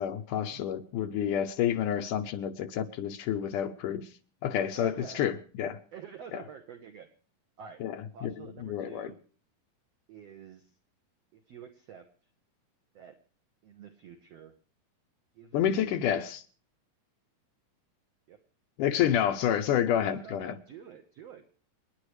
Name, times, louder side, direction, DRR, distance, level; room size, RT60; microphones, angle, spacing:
voice 1, 0.0-4.2 4.4-5.8 6.3-6.4 7.8-8.3 8.6-9.1 15.5-16.4 18.8-20.6, left 10 dB, 70° left, 2.3 m, -29 dB
voice 2, 4.8-5.3 5.6-7.1 7.6-7.8 8.1-9.2 10.1-10.8 11.3-12.1 12.9-13.2 13.6-14.5 15.3-16.2 18.3-18.4 19.9-21.7, right 7 dB, 60° right, 1.9 m, -48 dB
29.0 x 10.5 x 3.2 m
omnidirectional pair, 4.1 m